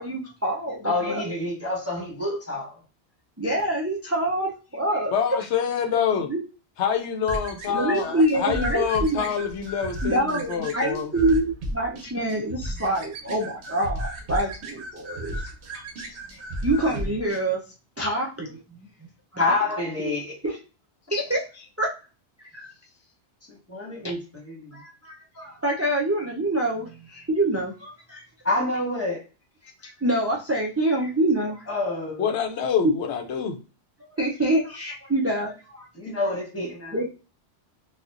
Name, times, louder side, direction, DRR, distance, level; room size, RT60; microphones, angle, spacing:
voice 1, 0.0-1.4 3.4-5.1 6.3-6.4 7.7-9.3 10.0-15.4 15.7-17.6 18.0-19.5 20.0-20.1 20.4-20.5 21.1-21.9 22.5-22.7 24.7-28.2 29.8-31.6 34.0-35.9 36.9-37.0, right 1 dB, 25° right, 0.3 m, -26 dB
voice 2, 0.8-2.8 16.9-17.0 19.4-20.3 23.7-24.8 28.4-29.2 31.7-32.3 35.9-37.0, left 2 dB, 15° left, 1.3 m, -28 dB
voice 3, 5.1-6.3 6.8-11.1 32.2-33.6 36.6-36.7, left 7 dB, 85° left, 0.9 m, -26 dB
sound 1, 7.3-17.4, right 1 dB, 75° right, 1.0 m, -34 dB
4.2 x 2.4 x 2.4 m
omnidirectional pair, 1.2 m